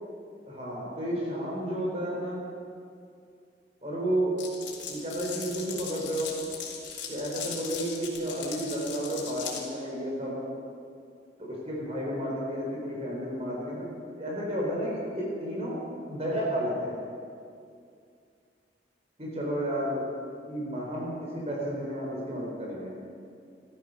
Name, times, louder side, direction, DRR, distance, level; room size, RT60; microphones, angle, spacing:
voice 1, 0.5-2.4 3.8-4.3 4.9-6.3 7.1-10.4 11.4-13.9 14.2-17.0 19.2-20.1 20.5-22.9, equal, 35° right, -4 dB, 3.9 m, -32 dB
Glass, 4.4-9.6, left 7 dB, 85° left, 3.1 m, -38 dB
14.5 x 13.0 x 6.4 m, 2.4 s
head